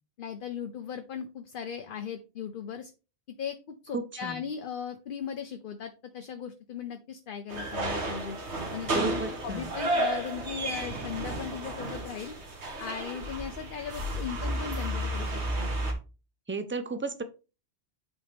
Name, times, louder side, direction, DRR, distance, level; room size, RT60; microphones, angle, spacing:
voice 1, 0.2-2.9 3.4-8.4 8.7-12.3 12.8-15.7, left 8 dB, 55° left, 6 dB, 0.8 m, -38 dB
voice 2, 3.9-4.4 8.9-9.7 16.5-17.2, right 3 dB, 15° right, 10 dB, 0.6 m, -34 dB
sound 1, 7.5-15.9, right 1 dB, 80° right, 1.8 m, -32 dB
8.6 x 4.4 x 3.4 m, 0.31 s
omnidirectional pair, 1.1 m